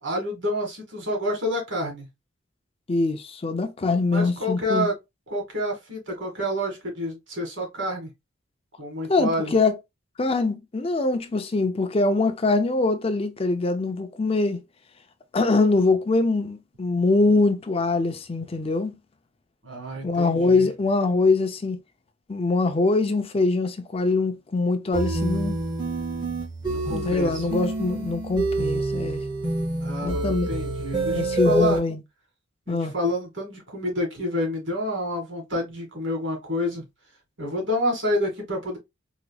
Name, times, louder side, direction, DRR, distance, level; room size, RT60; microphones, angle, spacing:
voice 1, 0.0-2.1 4.1-4.9 5.3-8.1 8.8-9.5 19.6-20.7 26.6-27.5 29.8-31.8 32.7-36.8 37.4-38.8, left 1 dB, 70° right, 1.8 m, -28 dB
voice 2, 2.9-4.9 9.1-9.8 10.2-14.6 15.3-19.0 20.0-21.8 22.3-25.6 26.9-29.2 30.0-30.5 31.1-32.0 32.7-32.9, left 3 dB, 30° left, 0.4 m, -23 dB
sound 1, 24.9-31.8, right 2 dB, 25° right, 2.1 m, -27 dB
3.9 x 3.0 x 2.2 m
head